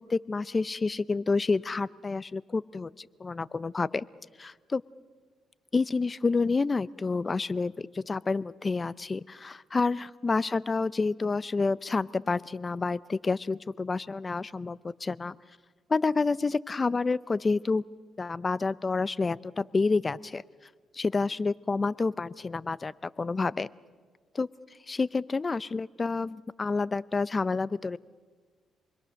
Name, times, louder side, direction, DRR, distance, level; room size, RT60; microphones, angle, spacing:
voice 1, 0.1-4.1 4.4-4.8 5.7-15.4 15.9-17.8 18.2-20.4 20.9-23.7 24.3-24.5 24.9-28.0, left 4 dB, 30° left, 18 dB, 0.6 m, -29 dB
27.5 x 21.5 x 6.4 m, 1.5 s
cardioid pair, 90°, 0 cm